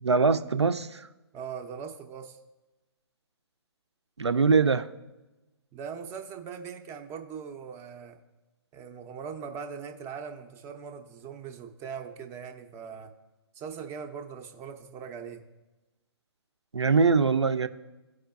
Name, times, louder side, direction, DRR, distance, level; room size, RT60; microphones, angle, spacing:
voice 1, 0.0-1.1 4.2-4.9 16.7-17.7, right 4 dB, 85° right, 0.5 m, -23 dB
voice 2, 1.3-2.4 5.7-8.2 8.7-13.1 13.5-15.4, right 6 dB, 20° right, 0.5 m, -40 dB
14.0 x 4.9 x 2.4 m
figure-of-eight pair, 125°, 14 cm